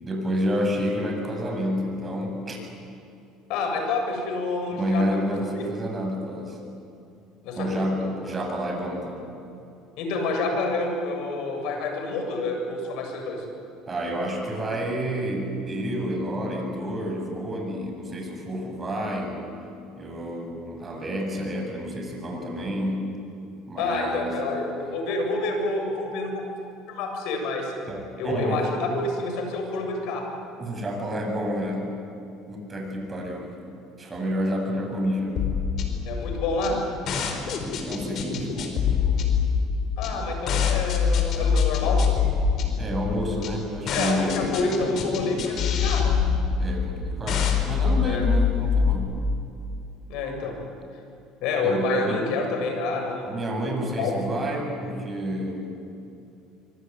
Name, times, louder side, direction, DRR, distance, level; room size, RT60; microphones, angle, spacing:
voice 1, 0.0-2.6 4.8-6.6 7.6-9.2 13.9-19.4 20.0-23.1 23.7-24.3 27.9-28.7 30.6-31.9 32.5-33.5 34.0-35.4 37.0-37.5 37.9-39.2 42.8-44.5 46.6-49.2 51.6-52.3 53.3-55.7, equal, 25° right, 2 dB, 7.9 m, -29 dB
voice 2, 3.5-5.6 7.4-8.1 10.0-13.4 23.8-26.6 26.9-27.7 28.2-30.3 36.0-36.8 40.0-42.2 43.9-46.3 48.0-48.2 50.1-50.5 51.4-54.1, left 3 dB, 75° left, 3 dB, 7.7 m, -28 dB
sound 1, 35.4-49.0, left 6 dB, 55° left, 4.9 m, -24 dB
25.0 x 24.5 x 9.8 m, 2.7 s
supercardioid pair, 110°, 0 cm